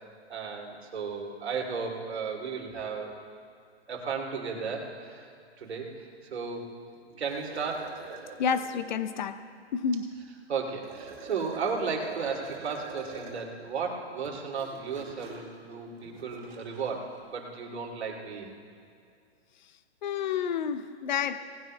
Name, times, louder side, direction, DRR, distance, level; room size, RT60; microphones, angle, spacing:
voice 1, 0.3-3.1 3.9-5.3 5.6-6.7 7.2-8.0 10.5-18.5, right 5 dB, 70° right, 0 dB, 2.7 m, -34 dB
sound 1, 7.3-9.0 10.8-13.5 14.1-16.9, right 5 dB, 40° right, 3.3 m, -45 dB
voice 2, 8.4-9.4 9.7-10.1 20.0-21.4, left 7 dB, 40° left, 11 dB, 0.8 m, -29 dB
19.5 x 16.5 x 2.2 m, 2.4 s
hypercardioid pair, 155°, 34 cm